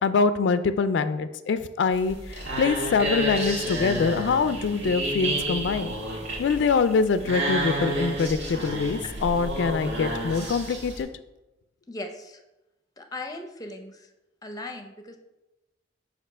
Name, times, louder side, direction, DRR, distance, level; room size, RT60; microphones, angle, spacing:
voice 1, 0.0-5.9 6.4-11.1, left 5 dB, 80° left, 11 dB, 0.3 m, -24 dB
sound 1, 1.9-11.0, right 1 dB, 65° right, 1.6 m, -30 dB
voice 2, 11.9-12.4 13.0-14.1 14.4-15.2, left 2 dB, 20° left, 5 dB, 0.6 m, -38 dB
6.6 x 2.8 x 5.3 m, 0.98 s
head